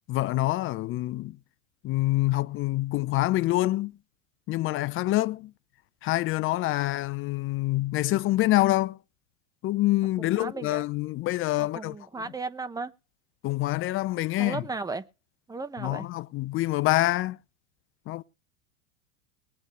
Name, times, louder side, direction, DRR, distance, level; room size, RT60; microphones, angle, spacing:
voice 1, 0.1-1.4 1.8-4.0 4.5-5.5 6.0-9.0 9.6-12.0 13.4-14.6 15.8-17.4 18.1-18.2, left 17 dB, 30° left, 0.5 m, -26 dB
voice 2, 10.2-10.8 11.6-12.9 14.4-15.0 15.5-16.1, right 3 dB, 10° right, 0.9 m, -35 dB
22.0 x 8.0 x 3.1 m
hypercardioid pair, 110°, 40 cm